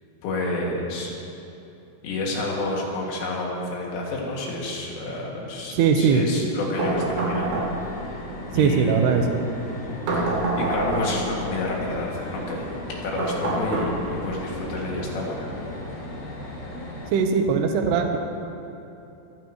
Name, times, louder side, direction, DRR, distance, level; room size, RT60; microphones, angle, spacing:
voice 1, 0.2-1.1 2.0-7.6 7.9-8.3 8.5-9.2 10.1-15.5, left 2 dB, 85° left, -3 dB, 4.9 m, -30 dB
voice 2, 5.7-6.2 8.5-9.4 17.1-18.2, right 6 dB, 70° right, 4 dB, 2.8 m, -20 dB
sound 1, 6.8-17.1, left 1 dB, 40° left, 3.6 m, -36 dB
sound 2, 6.8-8.1 10.1-11.4 13.2-14.4, right 2 dB, 90° right, 5.6 m, -26 dB
23.5 x 14.5 x 3.1 m, 2.9 s
omnidirectional pair, 5.6 m